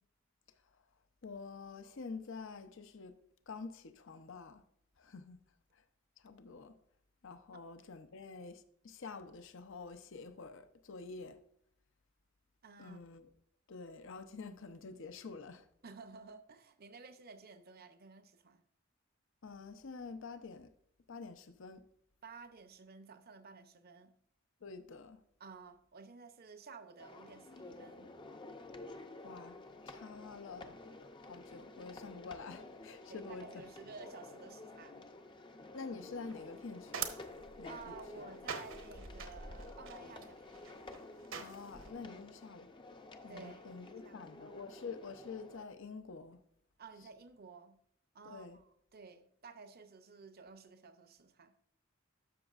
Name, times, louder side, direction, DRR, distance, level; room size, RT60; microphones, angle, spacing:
voice 1, 1.2-3.2 3.5-4.6 5.0-5.4 5.7-5.8 6.2-6.7 7.2-11.4 12.8-13.3 13.7-15.7 19.4-20.7 21.1-21.8 24.6-25.2 29.2-29.6 29.9-30.8 31.2-33.4 35.7-37.1 37.6-38.2 41.4-42.7 43.2-46.4 48.3-48.6, left 4 dB, 65° left, 0.7 m, -48 dB
voice 2, 12.6-13.0 15.8-18.6 22.2-24.2 25.4-28.1 33.1-35.1 37.6-40.5 43.3-44.3 46.8-47.8 48.1-51.6, right 4 dB, 50° right, 0.7 m, -53 dB
sound 1, 27.0-45.6, left 2 dB, 25° left, 0.6 m, -52 dB
sound 2, 36.3-41.9, right 6 dB, 65° right, 1.0 m, -46 dB
12.5 x 6.2 x 2.5 m
head